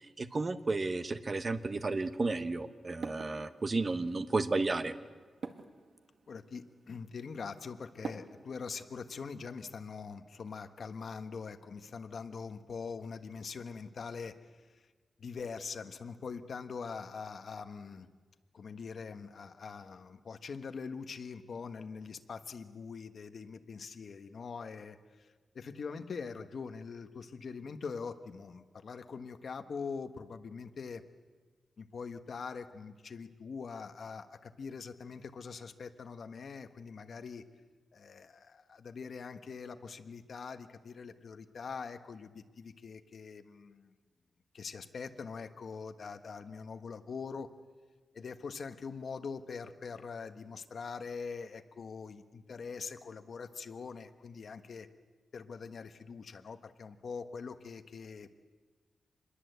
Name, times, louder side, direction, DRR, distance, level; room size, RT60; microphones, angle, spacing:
voice 1, 0.2-4.9, right 3 dB, 30° right, 9 dB, 1.1 m, -32 dB
sound 1, 1.4-8.8, right 4 dB, 55° right, 1.8 m, -49 dB
voice 2, 6.3-14.9 15.2-18.1 18.5-31.0 31.8-37.4 37.9-43.9 44.5-47.5 48.1-54.9 55.3-58.4, left 5 dB, 50° left, 8 dB, 1.3 m, -43 dB
27.0 x 22.0 x 8.2 m, 1.4 s
wide cardioid pair, 165°, 0 cm